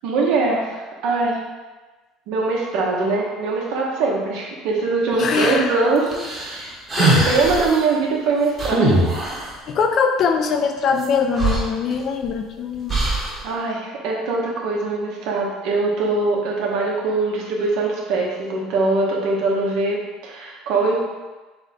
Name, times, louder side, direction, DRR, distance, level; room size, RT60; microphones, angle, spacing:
voice 1, 0.0-1.4 2.3-6.7 7.0-9.0 13.4-20.0 20.2-21.1, right 3 dB, 70° right, -2 dB, 1.1 m, -22 dB
voice 2, 5.2-5.8 6.9-7.5 9.7-13.0, left 5 dB, 45° left, 5 dB, 0.5 m, -22 dB
sound 1, 6.1-7.7 8.6-9.5 11.0-11.1 11.4-12.3 12.9-13.4, right 2 dB, 25° right, 1.2 m, -21 dB
3.6 x 3.5 x 4.2 m, 1.2 s
cardioid pair, 125°, 0 cm